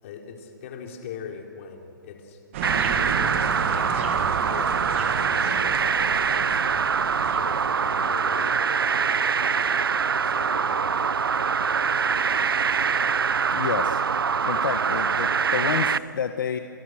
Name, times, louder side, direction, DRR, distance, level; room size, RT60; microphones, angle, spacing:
voice 1, 0.0-2.4 2.9-6.7 7.3-8.9 9.5-9.9 10.2-11.9, left 6 dB, 35° left, 2 dB, 4.0 m, -41 dB
sound 1, 2.5-8.8, right 7 dB, 35° right, 2.2 m, -33 dB
sound 2, 2.6-16.0, right 6 dB, 90° right, 0.8 m, -24 dB
voice 2, 13.5-14.0 14.4-16.6, left 7 dB, 65° left, 7 dB, 1.5 m, -29 dB
30.0 x 28.0 x 6.5 m, 2.5 s
hypercardioid pair, 160°, 12 cm